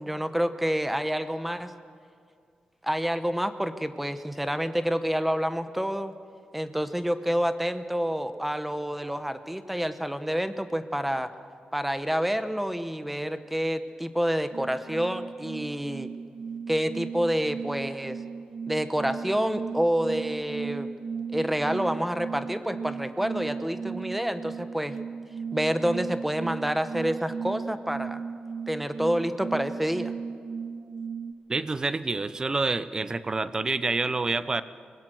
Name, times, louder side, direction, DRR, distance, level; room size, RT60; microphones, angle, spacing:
voice 1, 0.0-1.7 2.8-6.1 6.5-11.3 11.7-16.1 16.7-18.2 18.7-20.9 21.3-25.0 25.5-28.2 28.7-30.1, equal, 5° right, 10 dB, 0.9 m, -28 dB
sound 1, 14.5-31.3, right 5 dB, 60° right, 0.7 m, -36 dB
voice 2, 31.5-34.6, right 3 dB, 25° right, 14 dB, 0.7 m, -27 dB
24.5 x 20.0 x 7.7 m, 2.3 s
wide cardioid pair, 170°, 3 cm